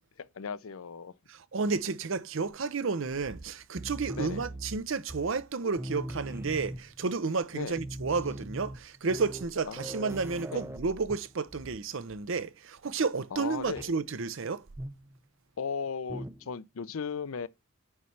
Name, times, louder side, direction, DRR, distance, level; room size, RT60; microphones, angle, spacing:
voice 1, 0.2-1.1 4.2-4.5 7.5-7.8 9.6-9.9 10.5-10.6 13.3-13.9 15.6-17.5, left 6 dB, 75° left, 0.5 m, -36 dB
voice 2, 1.3-14.6, right 4 dB, 65° right, 0.6 m, -31 dB
sound 1, 3.2-5.5 5.8-7.1 7.4-7.5 7.7-11.8 12.1-12.4 13.8-14.0 14.8-15.2 16.1-16.5, right 1 dB, 10° right, 0.5 m, -41 dB
9.6 x 3.2 x 5.5 m
head